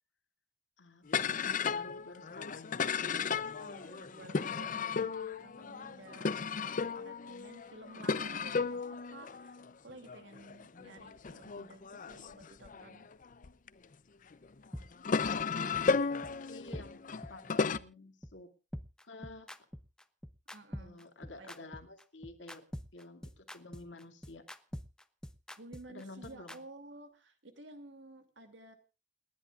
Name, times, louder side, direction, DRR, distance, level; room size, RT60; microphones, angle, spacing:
voice 1, 0.8-2.8 16.1-17.0 17.3-18.5 19.0-19.5 20.8-22.6 22.9-24.4 25.9-26.6, left 2 dB, 85° left, 5 dB, 2.4 m, -51 dB
sound 1, 1.1-13.7 14.3-17.8, left 5 dB, 45° left, 0.6 m, -35 dB
voice 2, 3.4-13.1 20.5-21.1 21.4-21.7 25.6-28.8, right 2 dB, 80° right, 6 dB, 2.7 m, -53 dB
sound 2, 14.7-14.8 15.2-15.3 15.7-15.8 16.2-16.3 16.7-16.8 17.2-17.3 17.7-17.8 18.2-18.3 18.7-26.6, equal, 5° left, 0.7 m, -44 dB
29.0 x 11.0 x 2.5 m, 0.30 s
head